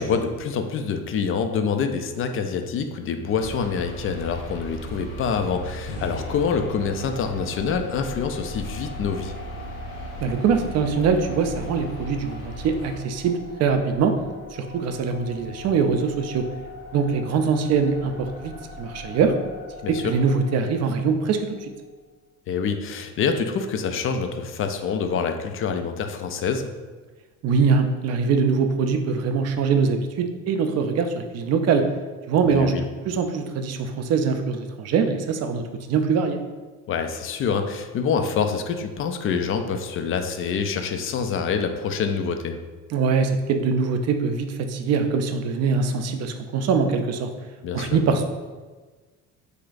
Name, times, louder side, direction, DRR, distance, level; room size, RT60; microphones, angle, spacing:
voice 1, 0.0-9.3 19.8-20.1 22.5-26.7 32.4-32.8 36.9-42.6 47.6-48.0, left 6 dB, 35° left, 7 dB, 0.4 m, -26 dB
sound 1, 3.4-13.0, right 2 dB, 90° left, 0.8 m, -38 dB
sound 2, 5.9-22.0, left 3 dB, 60° left, 1.2 m, -40 dB
voice 2, 10.2-14.1 14.7-16.4 16.9-19.3 19.9-21.5 27.4-31.9 32.3-32.7 33.1-35.6 35.9-36.4 42.9-47.3 47.7-48.3, right 5 dB, 40° right, 7 dB, 0.5 m, -23 dB
3.3 x 2.4 x 3.9 m, 1.3 s
hypercardioid pair, 70°, 40 cm